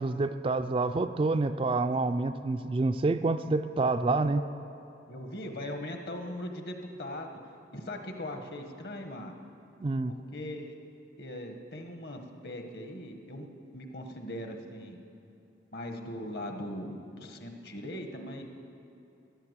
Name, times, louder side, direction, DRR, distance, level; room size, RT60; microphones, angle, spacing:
voice 1, 0.0-4.4 9.8-10.2, right 3 dB, 30° right, 9 dB, 0.3 m, -28 dB
voice 2, 3.8-4.4 5.1-7.3 7.7-9.3 10.1-10.7 11.2-15.0 15.7-18.4, left 1 dB, 55° left, 5 dB, 1.3 m, -40 dB
14.5 x 11.0 x 8.1 m, 2.7 s
head